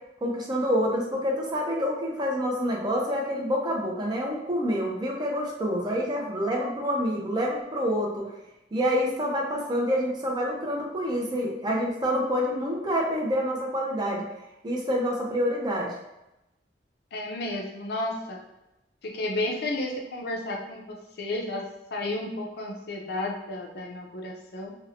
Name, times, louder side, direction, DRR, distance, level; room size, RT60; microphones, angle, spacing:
voice 1, 0.2-8.3 8.7-14.2 14.6-15.9, equal, 25° right, -1 dB, 0.5 m, -27 dB
voice 2, 17.1-18.4 19.0-24.8, left 2 dB, 60° left, 0 dB, 0.5 m, -32 dB
2.8 x 2.0 x 2.7 m, 0.91 s
head